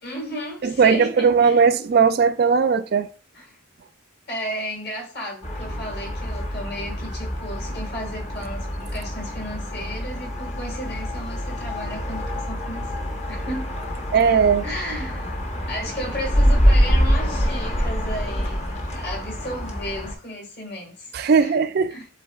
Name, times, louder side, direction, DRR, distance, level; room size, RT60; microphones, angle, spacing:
voice 1, 0.0-1.6 3.3-3.6 4.3-13.8 14.6-21.1 21.4-21.6 21.9-22.1, equal, 50° left, 1.9 m, -34 dB
voice 2, 0.6-3.1 14.1-14.6 21.1-21.9, right 6 dB, 50° right, 0.3 m, -18 dB
sound 1, 5.4-20.1, equal, 35° left, 0.9 m, -25 dB
10.5 x 3.9 x 2.3 m
head